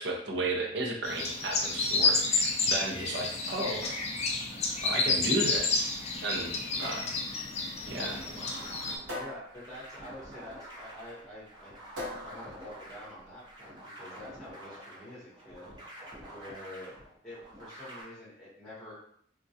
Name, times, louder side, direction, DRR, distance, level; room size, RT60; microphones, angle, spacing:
voice 1, 0.0-3.9 4.8-5.9 6.2-6.5 6.8-7.1 7.8-8.2, right 2 dB, 60° right, 1 dB, 0.6 m, -33 dB
sound 1, 1.0-9.0, left 3 dB, 35° left, 0.4 m, -30 dB
sound 2, 3.8-13.5, left 1 dB, 80° right, 1.0 m, -46 dB
sound 3, 7.9-18.0, right 1 dB, 20° right, 0.7 m, -48 dB
voice 2, 9.1-11.8 12.2-15.7 16.3-16.9 17.2-19.0, left 1 dB, 5° left, -7 dB, 0.9 m, -47 dB
3.5 x 2.2 x 2.7 m, 0.65 s
head